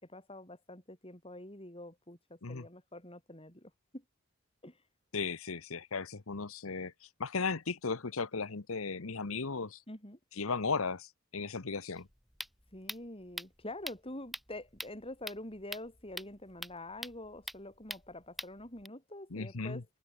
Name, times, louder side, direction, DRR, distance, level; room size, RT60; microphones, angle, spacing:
voice 1, 0.0-4.0 4.6-4.9 9.9-10.2 12.7-19.9, left 1 dB, 25° left, 6.9 m, -46 dB
voice 2, 5.1-6.9 7.2-9.8 10.4-11.1 11.3-12.1 19.3-19.8, left 4 dB, 70° left, 1.1 m, -36 dB
sound 1, 12.0-18.9, equal, ahead, 2.1 m, -45 dB
open air
head